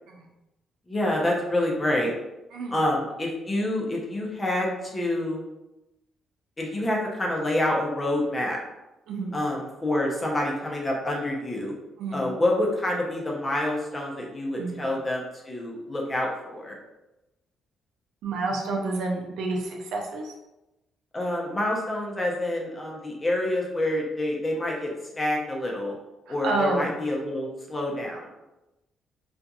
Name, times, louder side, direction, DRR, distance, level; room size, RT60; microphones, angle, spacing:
voice 1, 0.9-2.1 2.7-5.4 6.6-8.6 9.3-11.7 12.1-16.8 21.1-25.9 26.3-28.3, left 1 dB, 25° left, -2 dB, 0.7 m, -27 dB
voice 2, 9.1-9.4 12.0-12.2 14.6-14.8 18.2-20.3 26.3-26.9, right 2 dB, 85° right, 0 dB, 0.5 m, -29 dB
2.7 x 2.5 x 2.4 m, 0.97 s
cardioid pair, 90°, 0 cm